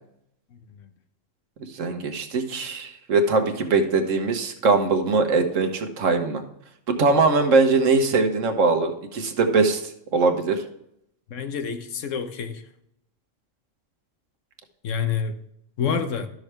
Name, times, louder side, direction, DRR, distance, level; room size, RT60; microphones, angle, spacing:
voice 1, 1.6-6.4 6.9-9.8 10.1-10.6, right 3 dB, 85° right, 1.4 m, -21 dB
voice 2, 11.3-12.6 14.8-15.4 15.8-16.3, left 6 dB, 80° left, 1.2 m, -27 dB
12.0 x 6.4 x 3.3 m
omnidirectional pair, 1.3 m